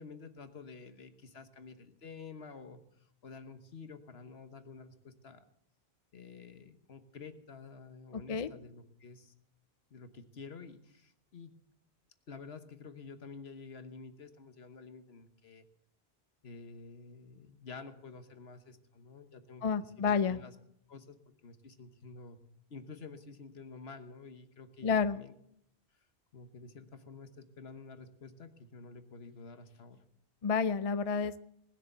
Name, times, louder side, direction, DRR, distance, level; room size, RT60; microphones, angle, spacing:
voice 1, 0.0-5.4 6.1-9.3 9.9-11.5 12.3-15.6 16.4-19.6 20.0-20.5 20.9-21.2 21.4-22.4 22.7-25.3 26.3-30.0, left 4 dB, 75° left, 9 dB, 1.4 m, -50 dB
voice 2, 19.6-20.4 24.8-25.2 30.4-31.4, left 6 dB, 45° left, 13 dB, 0.6 m, -30 dB
20.0 x 6.7 x 8.0 m, 0.72 s
omnidirectional pair, 1.1 m